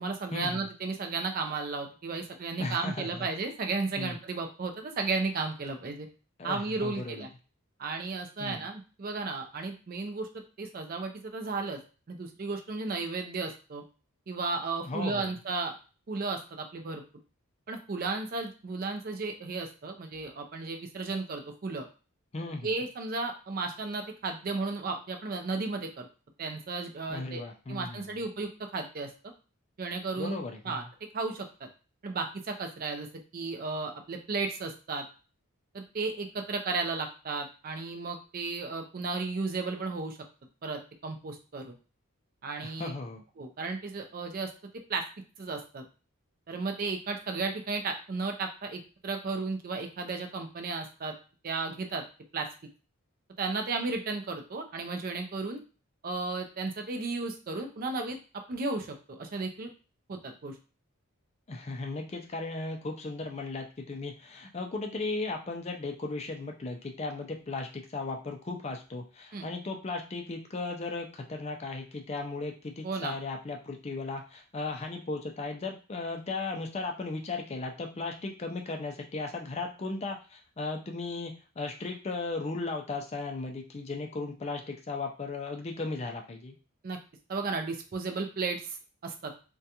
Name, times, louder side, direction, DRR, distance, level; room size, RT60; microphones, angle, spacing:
voice 1, 0.0-6.1 6.4-7.3 7.8-11.8 12.1-13.8 14.3-15.8 16.1-17.0 17.7-21.8 22.6-26.1 26.4-27.4 27.7-29.1 29.8-30.8 31.1-31.5 32.0-33.1 33.3-35.0 35.7-40.2 40.6-41.8 42.4-42.9 43.4-44.5 44.9-45.0 45.4-45.8 46.5-51.1 51.4-52.0 52.3-52.5 53.4-55.6 56.0-58.2 58.5-59.7 60.1-60.6 69.3-69.5 72.8-73.2 86.8-87.0 87.3-88.8 89.0-89.3, right 3 dB, 40° right, 4 dB, 0.4 m, -34 dB
voice 2, 2.6-3.3 4.0-4.2 6.4-7.3 8.4-8.7 14.8-15.3 22.3-22.7 27.1-28.1 30.2-30.9 42.6-43.2 61.5-86.6, left 3 dB, 30° left, 3 dB, 0.4 m, -36 dB
2.4 x 2.2 x 2.8 m, 0.35 s
head